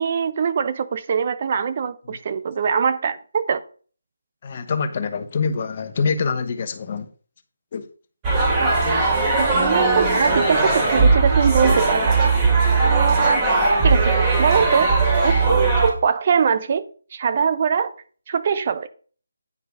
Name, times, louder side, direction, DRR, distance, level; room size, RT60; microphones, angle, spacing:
voice 1, 0.0-3.6 8.6-12.2 12.8-13.4 13.8-15.0 15.2-18.0 18.3-18.9, right 6 dB, 40° right, 0.8 m, -22 dB
voice 2, 4.4-7.1 7.7-7.9, left 5 dB, 35° left, 1.1 m, -25 dB
sound 1, 8.2-15.9, right 3 dB, 20° right, 2.7 m, -18 dB
9.7 x 4.7 x 5.1 m
figure-of-eight pair, 155°, 0 cm